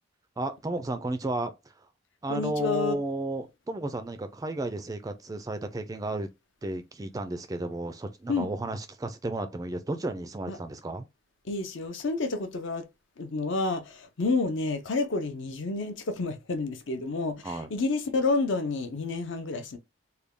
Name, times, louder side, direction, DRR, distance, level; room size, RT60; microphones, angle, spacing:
voice 1, 0.4-1.5 2.2-6.3 6.6-11.1 17.4-17.7, right 2 dB, 15° right, 0.3 m, -33 dB
voice 2, 2.3-3.0 8.3-8.5 10.5-10.6 11.5-12.9 13.2-19.8, left 3 dB, 60° left, 0.6 m, -29 dB
3.3 x 2.2 x 3.6 m
head